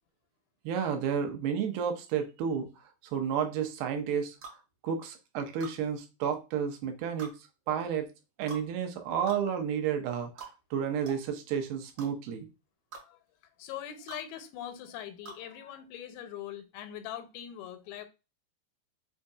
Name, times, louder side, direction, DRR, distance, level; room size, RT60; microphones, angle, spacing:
voice 1, 0.6-2.7 3.0-4.4 4.8-7.3 7.7-8.1 8.4-12.5, right 7 dB, 90° right, 2.7 m, -31 dB
sound 1, 4.4-4.6 5.6-5.8 7.2-7.4 8.5-8.7 9.3-9.4 10.4-10.5 11.1-11.2 12.0-12.1 12.9-13.1 14.1-14.2 15.3-15.4, right 4 dB, 55° right, 2.3 m, -44 dB
voice 2, 13.6-18.1, left 10 dB, 90° left, 2.5 m, -42 dB
6.2 x 2.7 x 2.3 m
omnidirectional pair, 4.4 m